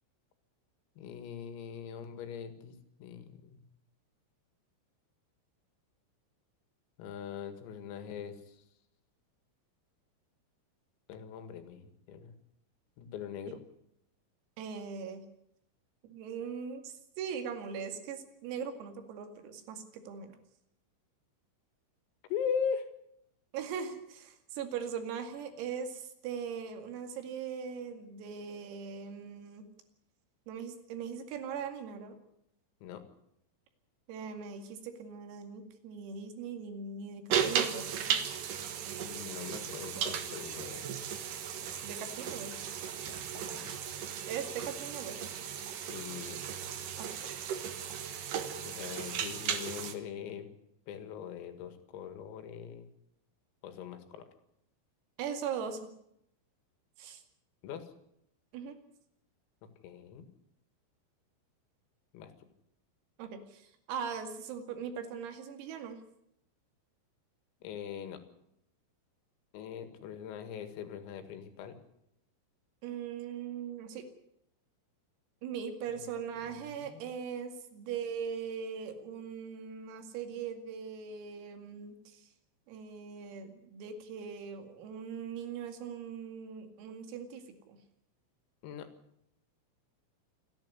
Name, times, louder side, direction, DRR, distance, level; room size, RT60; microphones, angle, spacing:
voice 1, 1.0-3.6 7.0-8.6 11.1-12.3 13.0-13.6 22.3-22.9 32.8-33.0 39.0-40.9 43.4-43.7 45.9-46.4 48.6-50.5 50.9-52.9 53.6-54.2 57.6-57.9 59.8-60.3 62.1-62.5 67.6-68.2 69.5-71.7 76.8-77.1 88.6-88.9, left 7 dB, 85° left, 9 dB, 4.7 m, -41 dB
voice 2, 14.6-15.2 16.0-20.3 23.5-29.7 30.5-32.2 34.1-38.2 41.8-42.5 44.3-45.2 47.0-47.2 55.2-55.9 57.0-57.2 58.5-58.8 63.2-66.0 72.8-74.0 75.4-82.3 82.7-87.8, right 7 dB, 85° right, 7 dB, 5.0 m, -40 dB
sound 1, 37.3-49.9, right 8 dB, 65° right, 2.2 m, -36 dB
28.5 x 10.5 x 9.7 m, 0.77 s
omnidirectional pair, 6.0 m